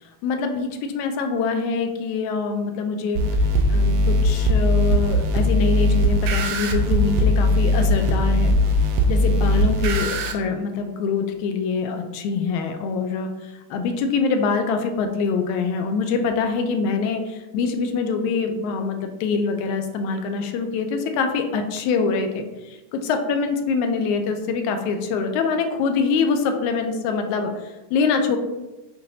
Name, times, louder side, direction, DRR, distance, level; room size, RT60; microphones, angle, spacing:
voice 1, 0.0-3.2 3.7-8.6 9.1-28.4, left 5 dB, 80° left, 5 dB, 1.9 m, -24 dB
sound 1, 3.1-10.3, left 1 dB, 75° right, 1.8 m, -19 dB
7.5 x 2.6 x 2.7 m, 1.0 s
omnidirectional pair, 3.4 m